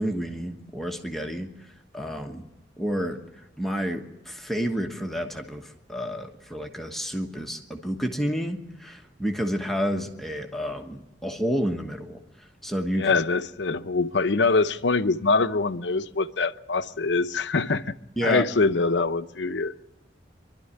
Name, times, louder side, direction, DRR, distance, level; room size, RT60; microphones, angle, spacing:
voice 1, 0.0-1.5 1.9-2.4 2.8-3.2 3.6-12.2 12.6-13.1 18.2-18.4, equal, ahead, 1.2 m, -30 dB
voice 2, 12.9-17.9 18.2-19.7, left 3 dB, 70° left, 0.8 m, -24 dB
25.0 x 12.0 x 9.9 m
head